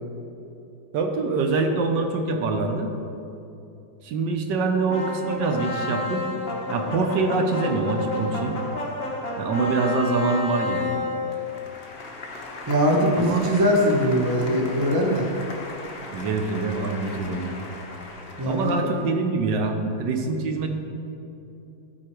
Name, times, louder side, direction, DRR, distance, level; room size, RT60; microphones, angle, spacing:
voice 1, 0.9-2.9 4.0-6.2 6.7-8.5 9.4-10.9 13.1-13.4 16.1-17.5 18.5-20.7, right 3 dB, 70° right, 4 dB, 1.3 m, -25 dB
sound 1, 4.9-19.1, left 2 dB, 40° left, 0.9 m, -33 dB
voice 2, 12.7-15.3 18.4-18.7, equal, 25° right, 0 dB, 0.5 m, -21 dB
13.0 x 4.5 x 4.5 m, 2.9 s
omnidirectional pair, 2.1 m